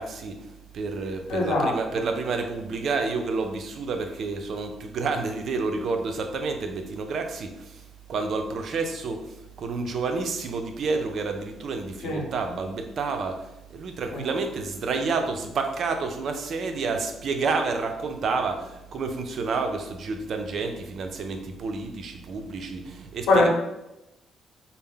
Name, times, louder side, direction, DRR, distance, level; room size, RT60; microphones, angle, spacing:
voice 1, 0.0-23.5, right 4 dB, 60° right, 5 dB, 0.5 m, -29 dB
voice 2, 1.3-2.0 12.0-12.3 14.1-14.3 23.3-23.5, left 2 dB, 85° left, -1 dB, 0.9 m, -23 dB
4.1 x 2.0 x 3.7 m, 0.90 s
cardioid pair, 100°, 0 cm